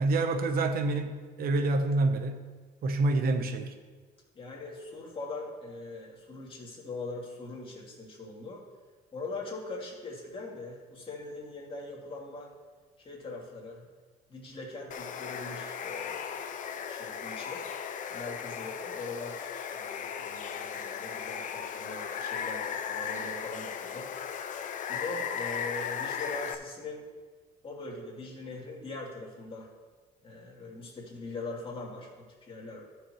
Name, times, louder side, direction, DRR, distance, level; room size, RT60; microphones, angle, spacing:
voice 1, 0.0-2.5 2.8-3.7, right 2 dB, 60° right, 8 dB, 1.0 m, -27 dB
voice 2, 4.3-8.6 9.1-12.5 13.0-13.9 14.3-16.3 16.9-17.7 18.1-24.1 24.9-27.0 27.6-29.7 30.2-32.8, left 3 dB, 30° left, -3 dB, 2.6 m, -41 dB
Water, 14.9-26.6, left 7 dB, 50° left, 0.7 m, -36 dB
14.0 x 6.5 x 3.1 m, 1.4 s
cardioid pair, 110°, 17 cm